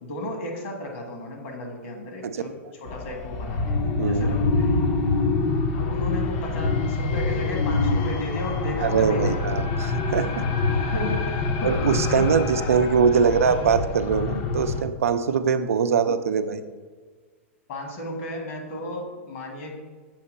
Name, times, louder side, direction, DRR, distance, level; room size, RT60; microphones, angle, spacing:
voice 1, 0.0-2.5 2.8-3.7 4.0-4.7 5.7-9.4 10.9-11.7 12.2-12.4 17.7-19.8, left 1 dB, 60° left, 1 dB, 1.6 m, -34 dB
sound 1, 2.9-14.8, left 3 dB, 45° left, 0.6 m, -25 dB
voice 2, 4.0-4.3 8.8-10.5 11.6-16.6, right 6 dB, 85° right, 10 dB, 0.4 m, -22 dB
7.0 x 2.9 x 5.4 m, 1.5 s
hypercardioid pair, 120°, 7 cm